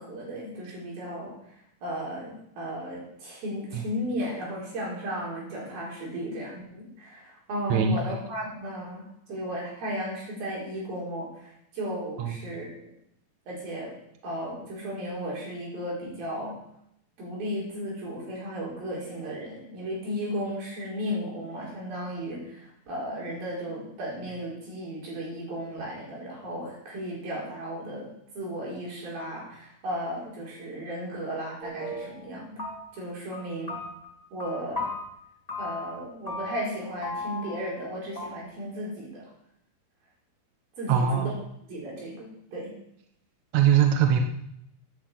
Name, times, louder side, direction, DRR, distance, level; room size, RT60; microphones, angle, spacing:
voice 1, 0.0-1.6 1.8-12.9 13.5-13.9 14.2-16.6 17.2-28.1 28.4-32.7 32.9-33.7 34.3-34.9 35.6-39.3 40.8-41.3 41.7-42.7, equal, 80° right, -4 dB, 6.9 m, -35 dB
voice 2, 7.7-8.1 12.2-12.3 40.9-41.3 43.5-44.2, right 8 dB, 60° right, 4 dB, 2.2 m, -22 dB
sound 1, 31.6-32.3 32.6-33.1 33.3-35.0 35.5-36.0 36.3-36.7 37.0-37.8 38.1-38.3, left 2 dB, 15° left, 1.5 m, -36 dB
10.5 x 8.8 x 8.4 m, 0.76 s
omnidirectional pair, 4.2 m